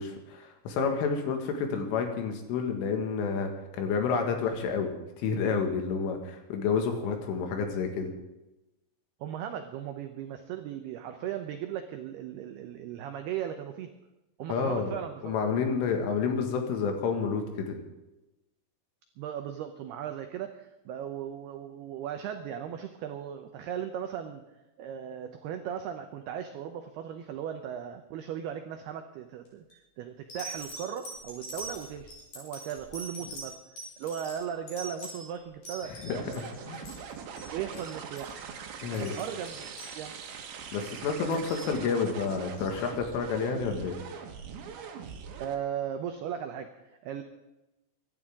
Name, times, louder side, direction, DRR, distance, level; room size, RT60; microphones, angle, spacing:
voice 1, 0.0-3.5 3.8-4.9 5.2-8.1 14.5-15.0 15.2-17.8 36.0-36.9 38.8-39.1 40.7-44.0, left 5 dB, 75° left, 4 dB, 4.3 m, -29 dB
voice 2, 9.2-13.9 14.4-15.4 19.2-24.4 24.8-33.6 34.0-36.3 37.5-38.3 38.9-40.2 41.3-41.4 45.4-47.2, right 9 dB, 85° right, 6 dB, 2.2 m, -37 dB
sound 1, 29.5-29.7 30.3-36.5 36.7-37.1 37.4-37.5 37.7-37.9 38.2-38.4 38.8-40.4 41.0-41.7 42.5-42.6, right 1 dB, 40° left, 6.2 m, -43 dB
sound 2, 36.1-45.6, right 6 dB, 70° right, 3.6 m, -42 dB
24.5 x 12.0 x 3.7 m, 0.98 s
omnidirectional pair, 5.8 m